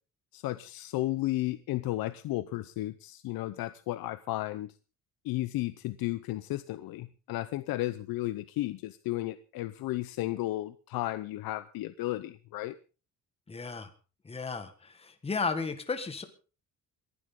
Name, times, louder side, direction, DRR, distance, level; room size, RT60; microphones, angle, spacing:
voice 1, 0.3-4.7 5.2-12.8, left 17 dB, 85° left, 12 dB, 0.8 m, -33 dB
voice 2, 13.5-13.9 14.2-16.2, left 4 dB, 15° left, 8 dB, 1.6 m, -34 dB
27.5 x 11.5 x 3.8 m, 0.36 s
cardioid pair, 150°, 35 cm